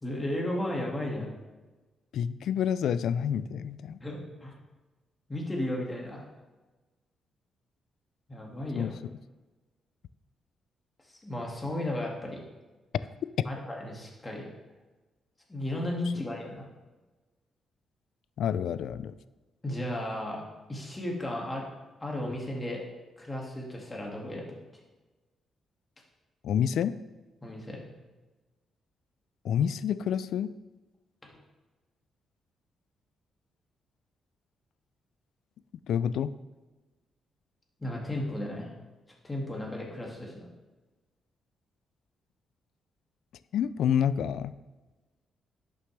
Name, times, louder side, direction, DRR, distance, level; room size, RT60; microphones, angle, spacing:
voice 1, 0.0-1.3 4.0-4.6 5.3-6.2 8.3-8.9 11.1-12.4 13.5-14.4 15.5-16.6 19.6-20.4 20.7-21.7 22.0-22.8 23.2-24.5 27.4-27.8 31.2-31.3 37.8-38.7 39.2-40.5, left 1 dB, 20° left, -1 dB, 2.1 m, -34 dB
voice 2, 2.1-4.0 8.8-8.9 18.4-19.2 26.4-26.9 29.4-30.5 35.9-36.3 43.5-44.5, left 8 dB, 75° left, 15 dB, 0.3 m, -28 dB
11.0 x 6.5 x 3.3 m, 1.2 s
cardioid pair, 105°, 0 cm